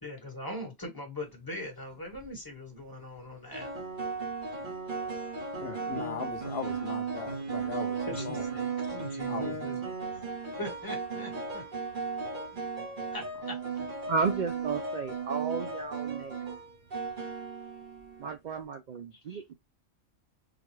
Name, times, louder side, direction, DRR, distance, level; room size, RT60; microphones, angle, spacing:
voice 1, 0.0-3.7 8.1-9.8 10.1-10.2 10.6-11.6 13.1-13.6, left 1 dB, 20° left, 1.2 m, -41 dB
sound 1, 1.9-2.3 3.5-18.4, right 4 dB, 45° right, 1.2 m, -36 dB
voice 2, 5.6-8.5 9.3-9.6 19.1-19.2, left 6 dB, 60° left, 0.7 m, -39 dB
voice 3, 14.1-16.4 18.2-19.5, right 5 dB, 65° right, 0.4 m, -33 dB
3.9 x 2.3 x 3.0 m
omnidirectional pair, 1.3 m